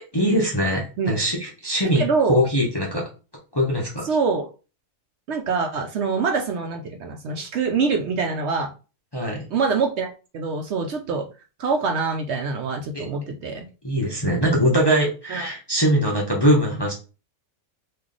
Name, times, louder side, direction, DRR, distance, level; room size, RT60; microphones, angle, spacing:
voice 1, 0.1-3.1 3.5-4.1 9.1-9.5 12.9-13.1 13.8-16.9, equal, 25° left, -3 dB, 0.7 m, -22 dB
voice 2, 2.0-2.4 4.0-4.5 5.3-8.7 9.5-10.1 10.3-11.2 11.6-13.7 15.3-15.5, right 4 dB, 65° right, 4 dB, 0.8 m, -24 dB
3.1 x 2.5 x 3.8 m, 0.33 s
omnidirectional pair, 1.4 m